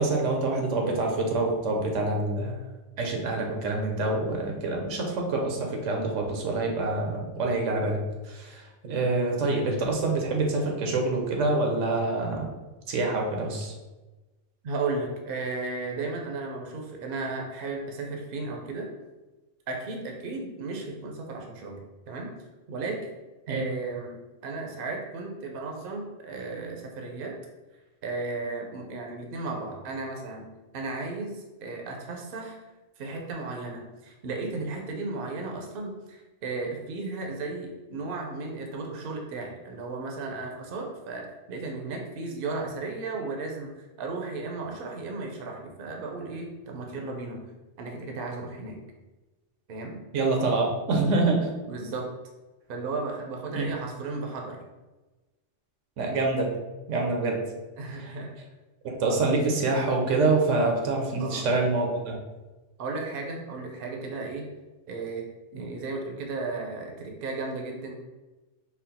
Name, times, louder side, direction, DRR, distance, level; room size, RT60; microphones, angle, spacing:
voice 1, 0.0-2.6 3.0-8.6 8.9-12.5 12.9-13.7 23.5-23.7 50.1-51.5 53.5-53.7 56.0-56.6 56.9-57.4 57.9-58.1 58.8-62.2 65.5-65.6, right 3 dB, 80° right, 1 dB, 1.1 m, -26 dB
voice 2, 14.6-18.9 19.7-21.8 22.1-22.3 22.7-23.1 23.5-27.3 28.0-30.5 30.7-32.6 33.0-43.7 44.0-47.5 47.8-48.8 49.7-50.0 51.7-52.1 52.7-54.6 57.8-58.3 61.2-61.5 62.8-64.5 64.9-67.9, right 3 dB, 55° right, 1 dB, 0.7 m, -34 dB
4.3 x 2.0 x 4.0 m, 1.2 s
omnidirectional pair, 1.3 m